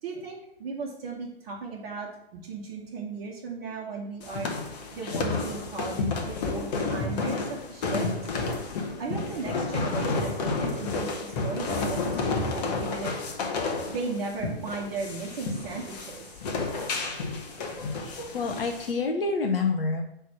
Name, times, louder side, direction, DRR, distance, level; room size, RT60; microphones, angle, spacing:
voice 1, 0.0-4.5 4.9-8.3 9.0-13.1 13.9-16.3, right 4 dB, 40° right, -4 dB, 1.2 m, -36 dB
sound 1, 4.2-18.9, left 3 dB, 40° left, 1.2 m, -31 dB
voice 2, 18.0-20.0, left 4 dB, 65° left, 3 dB, 0.9 m, -28 dB
6.2 x 3.4 x 6.0 m, 0.80 s
figure-of-eight pair, 115°, 32 cm